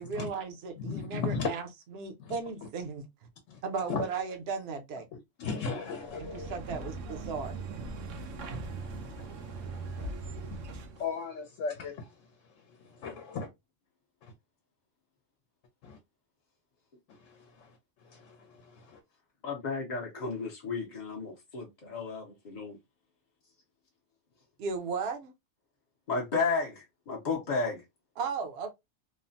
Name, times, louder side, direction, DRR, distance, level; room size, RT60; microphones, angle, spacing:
voice 1, 0.0-1.6 1.9-3.1 3.6-5.1 6.3-7.6 10.4-10.5 24.6-25.3 28.2-28.7, right 5 dB, 65° right, 0.8 m, -36 dB
voice 2, 0.8-1.5 2.2-2.3 3.5-3.6 3.9-4.0 5.4-6.6 8.3-10.6 11.0-12.2 12.7-13.5 14.2-14.3 15.8-16.0 17.5-17.8 18.0-19.0, left 5 dB, 80° left, 1.0 m, -37 dB
sound 1, 6.0-11.1, right 3 dB, 85° right, 1.0 m, -40 dB
voice 3, 19.4-22.8 26.1-27.8, left 4 dB, 45° left, 0.6 m, -33 dB
3.1 x 2.0 x 2.6 m
omnidirectional pair, 1.3 m